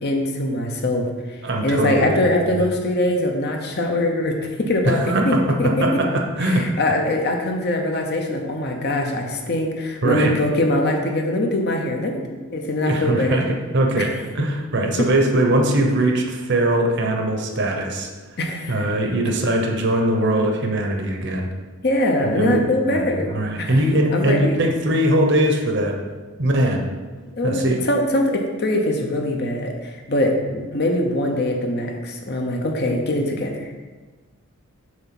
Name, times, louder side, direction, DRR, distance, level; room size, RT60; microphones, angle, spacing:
voice 1, 0.0-6.0 6.4-12.1 12.5-13.4 14.0-14.1 14.4-14.5 15.0-15.1 18.4-18.9 21.8-23.3 23.6-23.8 24.1-24.6 27.3-33.8, left 1 dB, 50° left, 2 dB, 0.8 m, -22 dB
voice 2, 1.4-2.2 4.8-6.7 10.0-10.4 12.9-14.1 14.3-18.1 18.7-21.5 22.3-26.0 26.4-26.9 27.4-27.8, right 1 dB, 50° right, 2 dB, 0.9 m, -21 dB
7.4 x 3.5 x 5.9 m, 1.3 s
head